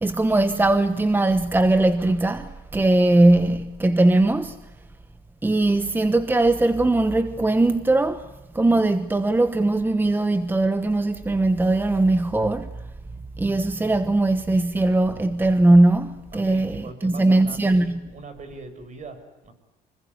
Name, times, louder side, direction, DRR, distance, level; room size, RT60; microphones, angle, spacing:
voice 1, 0.0-4.6 5.4-8.3 8.5-12.7 13.4-18.0, right 2 dB, 10° right, 1.2 m, -20 dB
voice 2, 16.3-19.5, right 3 dB, 45° right, 6.5 m, -41 dB
25.5 x 23.5 x 9.5 m
cardioid pair, 110°, 17 cm